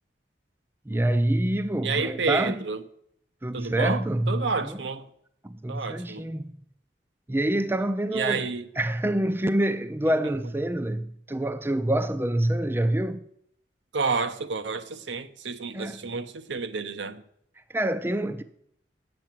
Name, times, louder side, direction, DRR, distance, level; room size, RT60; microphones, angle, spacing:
voice 1, 0.9-2.7 3.4-4.8 5.4-6.5 7.3-8.5 8.8-13.2 15.7-16.2 17.7-18.4, right 1 dB, 10° right, 0.4 m, -26 dB
voice 2, 1.8-2.8 3.5-5.0 5.7-6.2 8.1-8.6 13.9-17.2, right 4 dB, 85° right, 0.8 m, -30 dB
9.3 x 7.6 x 7.4 m
head